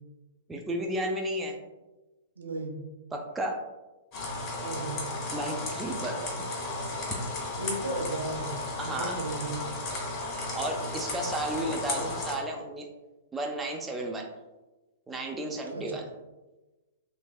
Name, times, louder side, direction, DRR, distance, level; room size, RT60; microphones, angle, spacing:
voice 1, 0.5-1.6 3.1-3.6 5.3-6.4 8.8-9.2 10.5-12.9 13.3-14.3 15.1-16.1, right 1 dB, 15° right, 1 dB, 0.4 m, -33 dB
voice 2, 2.4-2.8 4.6-5.0 7.6-8.5 8.8-9.6 15.7-15.8, right 2 dB, 80° right, 2 dB, 0.6 m, -35 dB
sound 1, 4.1-12.3, left 2 dB, 40° left, 1.4 m, -34 dB
3.3 x 3.3 x 2.3 m, 1.1 s
figure-of-eight pair, 110°, 0 cm